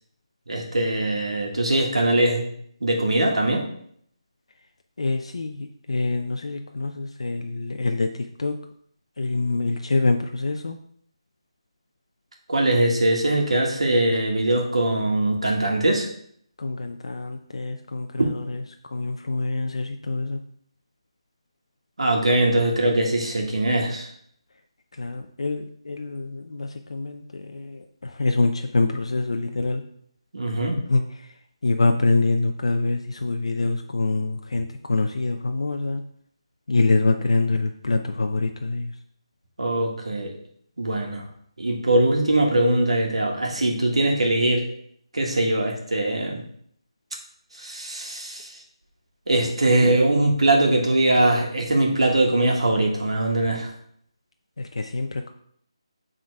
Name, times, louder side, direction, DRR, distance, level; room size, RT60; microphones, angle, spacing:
voice 1, 0.5-2.4 2.8-3.6 12.5-16.1 22.0-24.1 30.3-30.8 39.6-40.3 40.8-41.2 41.6-44.6 45.1-46.4 47.5-48.5 49.3-53.7, right 1 dB, 85° right, 0 dB, 1.6 m, -21 dB
voice 2, 5.0-5.6 5.9-8.1 8.4-8.5 9.2-10.8 16.6-18.6 18.9-20.4 25.0-27.2 27.5-29.8 30.9-31.0 31.6-36.0 36.7-38.9 54.6-55.3, left 3 dB, 75° left, 5 dB, 0.5 m, -25 dB
6.4 x 3.8 x 4.7 m, 0.66 s
figure-of-eight pair, 165°, 3 cm